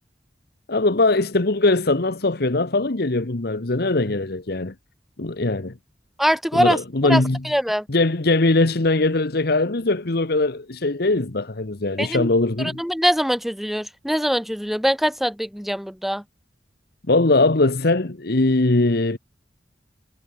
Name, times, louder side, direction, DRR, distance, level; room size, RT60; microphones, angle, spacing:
voice 1, 0.7-4.7 5.2-5.7 6.5-7.4 7.9-12.8 17.1-19.2, left 2 dB, 60° left, 1.2 m, -21 dB
voice 2, 6.2-6.8 7.0-7.9 12.0-12.3 12.6-16.2, equal, ahead, 1.8 m, -23 dB
head